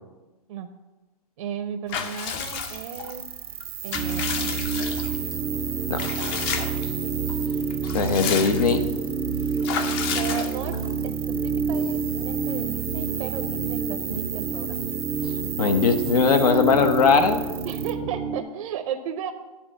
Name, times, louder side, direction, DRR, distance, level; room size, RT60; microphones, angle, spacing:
voice 1, 1.4-3.2 3.8-4.6 10.1-10.8 11.0-14.8 17.6-19.3, right 8 dB, 60° right, 7 dB, 0.6 m, -34 dB
Water / Bathtub (filling or washing) / Liquid, 1.9-3.1 3.6-5.3 6.0-6.9 7.3-7.4 7.7-8.9 9.6-10.9, left 7 dB, 40° left, 0.7 m, -31 dB
sound 1, 2.4-17.9, right 9 dB, 90° right, 0.9 m, -36 dB
sound 2, 3.9-18.4, right 5 dB, 10° right, 0.4 m, -29 dB
voice 2, 7.9-8.8 15.2-17.4, left 5 dB, 80° left, 8 dB, 1.0 m, -20 dB
10.5 x 3.8 x 6.7 m, 1.1 s
hypercardioid pair, 135°, 19 cm